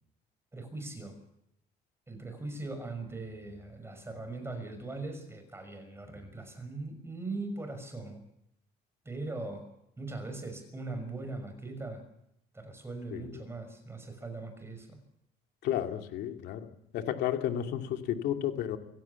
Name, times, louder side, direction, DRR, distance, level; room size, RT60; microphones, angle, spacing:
voice 1, 0.5-1.1 2.1-8.2 9.0-9.6 10.0-12.0 12.5-15.0, right 3 dB, 15° right, 8 dB, 6.0 m, -40 dB
voice 2, 13.1-13.4 15.6-16.7 16.9-18.8, left 11 dB, 80° left, 5 dB, 2.6 m, -32 dB
24.5 x 17.0 x 7.2 m, 0.78 s
cardioid pair, 110°, 17 cm